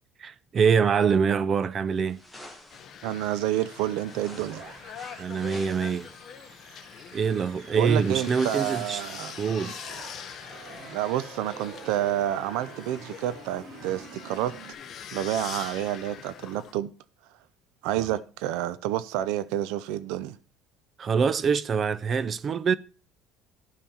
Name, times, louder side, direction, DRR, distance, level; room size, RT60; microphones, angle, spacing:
voice 1, 0.2-2.2 5.2-6.1 7.1-9.0 9.4-9.8 18.0-18.1 21.0-22.7, right 6 dB, 25° right, 0.3 m, -25 dB
sound 1, 2.1-3.0 3.7-6.8, left 1 dB, ahead, 1.2 m, -49 dB
sound 2, 2.7-16.7, left 8 dB, 35° left, 0.9 m, -43 dB
voice 2, 3.0-4.6 7.8-9.4 10.8-14.5 15.1-16.9 17.8-20.4, right 13 dB, 75° right, 0.5 m, -29 dB
sound 3, 4.1-14.7, right 6 dB, 40° right, 1.2 m, -47 dB
12.5 x 5.6 x 4.3 m
cardioid pair, 175°, 0 cm